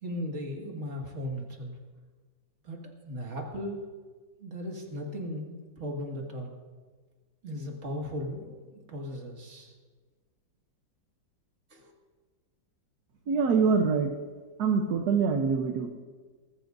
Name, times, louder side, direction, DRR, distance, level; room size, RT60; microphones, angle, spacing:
voice 1, 0.0-1.8 2.6-3.8 4.4-6.6 7.4-9.8 11.7-11.9, equal, 40° right, 0 dB, 2.2 m, -37 dB
voice 2, 13.3-14.1 14.6-15.9, right 5 dB, 65° right, 4 dB, 1.4 m, -24 dB
20.5 x 14.0 x 2.6 m, 1.4 s
omnidirectional pair, 2.0 m